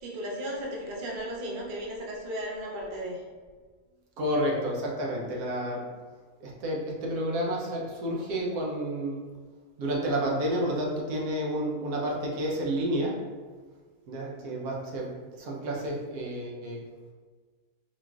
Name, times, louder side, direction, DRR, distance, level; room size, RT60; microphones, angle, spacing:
voice 1, 0.0-3.2, equal, 55° right, -2 dB, 0.6 m, -35 dB
voice 2, 4.2-5.9 6.4-9.3 9.8-13.2 14.1-15.1 15.4-16.8, right 1 dB, 80° right, -2 dB, 1.2 m, -30 dB
3.8 x 2.5 x 2.3 m, 1.5 s
omnidirectional pair, 1.6 m